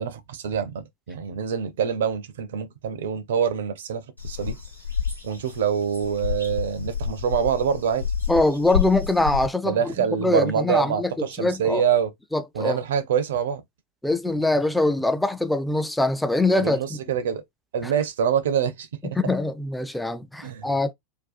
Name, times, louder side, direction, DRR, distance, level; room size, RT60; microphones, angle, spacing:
voice 1, 0.0-4.6 5.2-8.1 9.6-12.1 12.5-13.6 16.6-17.4 17.7-19.2 20.4-20.8, right 8 dB, 60° right, 0.4 m, -25 dB
sound 1, 4.2-9.5, left 7 dB, 85° left, 0.8 m, -29 dB
voice 2, 8.3-9.9 10.2-11.1 11.4-11.8 12.3-12.8 14.0-17.0 17.8-17.9 19.0-20.9, left 2 dB, 5° left, 0.3 m, -23 dB
2.6 x 2.2 x 2.4 m
figure-of-eight pair, 90°, 0 cm